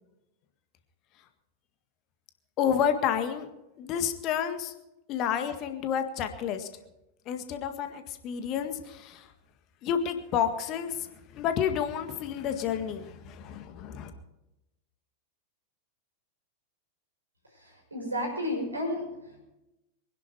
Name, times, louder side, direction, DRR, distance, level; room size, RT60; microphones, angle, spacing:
voice 1, 2.6-3.5 3.8-4.7 5.1-6.7 7.3-9.3 9.8-11.1 11.3-14.1, left 8 dB, 35° left, 8 dB, 1.8 m, -30 dB
voice 2, 17.5-19.4, left 1 dB, 80° right, 1 dB, 5.9 m, -33 dB
24.5 x 11.0 x 4.8 m, 0.93 s
figure-of-eight pair, 90°, 0 cm